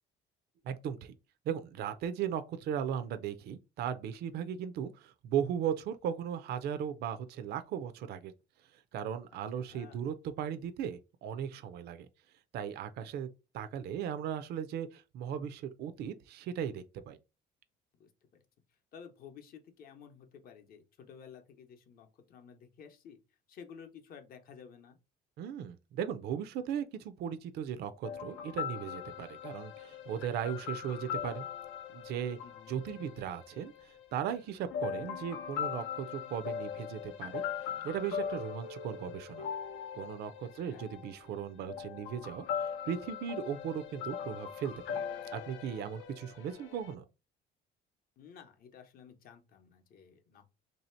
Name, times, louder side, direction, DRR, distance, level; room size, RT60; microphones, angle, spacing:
voice 1, 0.7-1.1 1.5-8.3 8.9-12.1 12.5-13.3 13.5-17.2 25.4-31.5 31.9-32.4 32.7-39.4 39.9-45.0 45.3-47.1, right 8 dB, 55° right, 0.4 m, -37 dB
voice 2, 9.6-10.0 18.0-18.1 18.9-23.2 23.5-25.0 32.4-32.7 40.6-40.9 48.2-50.5, left 7 dB, 50° left, 0.8 m, -53 dB
sound 1, 28.0-34.0 34.7-46.9, left 8 dB, 80° left, 0.6 m, -40 dB
3.2 x 2.7 x 4.3 m
cardioid pair, 170°, 20 cm